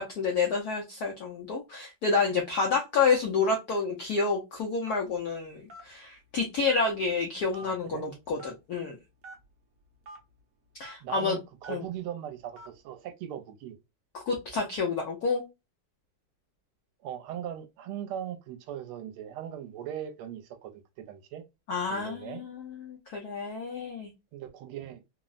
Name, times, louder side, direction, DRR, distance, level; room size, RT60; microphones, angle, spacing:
voice 1, 0.0-9.0 10.8-11.4 11.7-11.8 14.3-15.5 21.7-24.1, left 4 dB, 80° left, 0.8 m, -29 dB
Telephone, 4.9-5.2 5.7-5.9 6.7-7.1 7.5-7.7 8.4-8.6 9.2-9.4 10.0-10.2 10.8-10.9 11.6-11.9 12.6-12.7, right 1 dB, 60° right, 0.9 m, -45 dB
voice 2, 7.6-8.1 11.0-13.8 17.0-21.4 21.9-22.4 24.3-25.0, right 10 dB, 80° right, 1.4 m, -39 dB
3.6 x 2.0 x 2.3 m
omnidirectional pair, 2.4 m